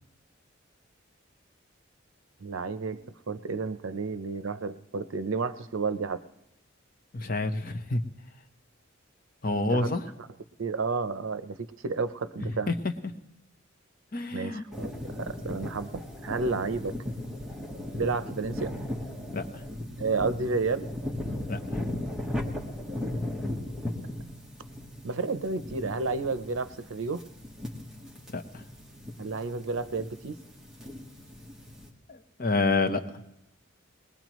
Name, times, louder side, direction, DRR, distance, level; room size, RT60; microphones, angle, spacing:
voice 1, 2.4-3.0 3.3-6.2 9.4-9.9 10.6-12.7 14.3-17.0 17.9-18.7 20.0-20.9 25.0-27.2 29.2-30.4, right 4 dB, 80° right, 12 dB, 0.7 m, -31 dB
voice 2, 7.1-8.0 9.4-10.0 12.7-12.8 14.1-14.6 15.2-15.3 19.3-19.6 21.5-21.6 28.3-28.6 32.1-33.0, left 3 dB, 45° left, 6 dB, 0.9 m, -28 dB
sound 1, 14.7-31.9, left 1 dB, 5° right, 1.3 m, -37 dB
20.5 x 20.0 x 3.1 m, 0.87 s
head